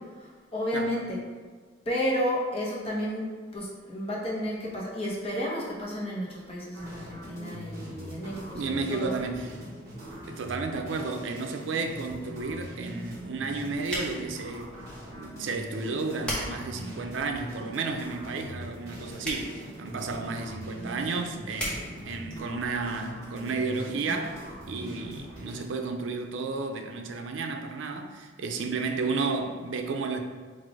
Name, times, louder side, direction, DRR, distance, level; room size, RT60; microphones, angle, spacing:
voice 1, 0.2-1.2 1.9-8.6 8.9-9.1, equal, 30° left, -4 dB, 0.9 m, -32 dB
sound 1, 6.7-25.6, equal, 15° right, 1.5 m, -42 dB
voice 2, 8.5-9.6 10.3-14.7 15.0-24.4 24.7-30.2, right 4 dB, 80° right, 5 dB, 0.4 m, -32 dB
sound 2, 13.1-23.1, equal, 5° left, 1.0 m, -41 dB
4.0 x 2.5 x 4.6 m, 1.5 s
head